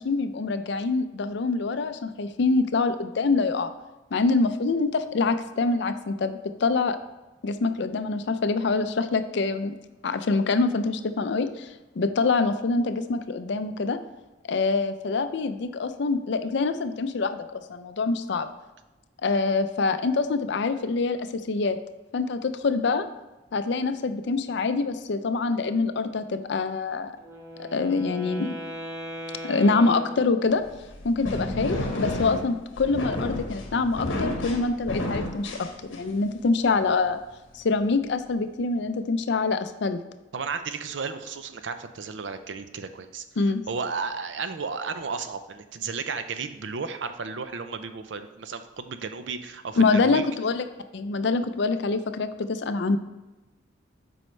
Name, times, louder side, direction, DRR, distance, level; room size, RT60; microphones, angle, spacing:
voice 1, 0.0-3.7 4.1-7.0 7.4-9.7 10.0-14.0 14.5-18.5 19.2-21.8 22.1-23.0 23.5-27.1 27.6-28.5 29.4-30.6 31.0-37.2 37.5-40.0 43.4-43.6 49.8-50.6 50.9-53.0, left 3 dB, 65° left, 10 dB, 0.5 m, -25 dB
Wind instrument woodwind instrument, 27.2-30.8, equal, 15° right, 1.1 m, -39 dB
sound 1, 30.6-36.3, left 1 dB, 80° left, 1.2 m, -31 dB
voice 2, 40.3-43.2 43.7-50.2, right 5 dB, 65° right, 9 dB, 0.5 m, -33 dB
7.7 x 5.3 x 3.2 m, 1.1 s
head